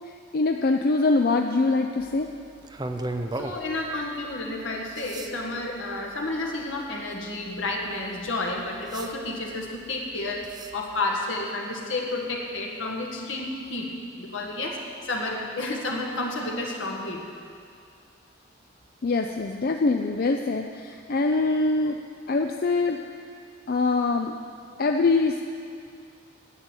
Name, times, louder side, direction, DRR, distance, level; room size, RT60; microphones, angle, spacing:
voice 1, 0.3-2.3 19.0-22.0 22.3-23.0 23.7-24.3 24.8-25.4, left 3 dB, 50° left, 4 dB, 0.5 m, -23 dB
sound 1, 2.0-10.9, right 2 dB, 20° right, 0.5 m, -40 dB
voice 2, 3.3-10.4 10.7-13.9 14.2-17.2, left 2 dB, 80° left, 0 dB, 1.8 m, -31 dB
9.9 x 8.7 x 8.2 m, 2.4 s
head